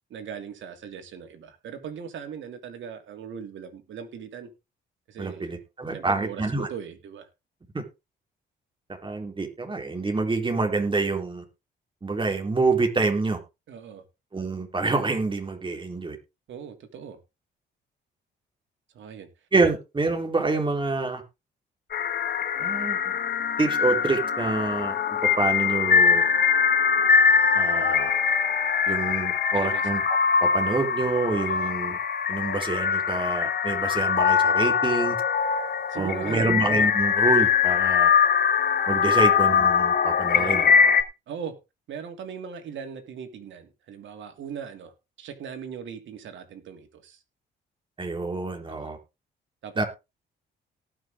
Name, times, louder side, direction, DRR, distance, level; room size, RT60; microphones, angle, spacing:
voice 1, 0.1-4.5 5.1-5.5 5.9-7.3 13.7-14.0 16.5-17.2 18.9-19.3 29.5-29.9 31.5-31.7 35.9-36.5 39.0-39.3 40.3-40.9 41.3-41.6 41.9-44.9 45.2-47.2 48.7-49.0 49.6-49.8, right 7 dB, 75° right, 2.9 m, -39 dB
voice 2, 5.2-6.7 7.7-7.8 9.0-11.4 12.0-13.4 14.3-16.2 19.5-21.2 22.6-23.2 23.6-24.9 25.4-26.2 27.5-28.1 28.9-32.0 32.3-35.2 35.9-38.1 38.9-40.7 48.0-49.0 49.8-49.9, right 3 dB, 25° right, 3.8 m, -27 dB
sound 1, 21.9-41.0, left 6 dB, 50° left, 1.5 m, -22 dB
18.5 x 6.2 x 3.8 m
cardioid pair, 90°, 20 cm